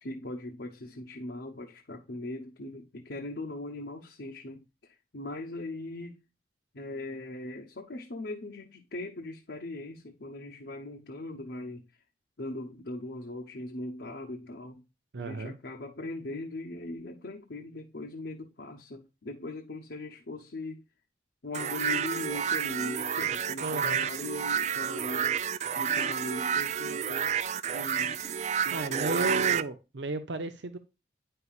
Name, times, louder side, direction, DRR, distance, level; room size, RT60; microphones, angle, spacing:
voice 1, 0.0-4.6 5.1-6.2 6.7-11.8 12.4-14.8 15.2-20.8 21.4-25.4 25.7-27.4 27.7-28.2 28.5-29.5, left 2 dB, 70° left, 0.9 m, -40 dB
voice 2, 15.1-15.6 23.6-24.1 28.7-30.8, right 3 dB, 80° right, 0.7 m, -33 dB
sound 1, 21.5-29.6, right 8 dB, 40° right, 0.3 m, -30 dB
9.5 x 5.6 x 2.4 m
head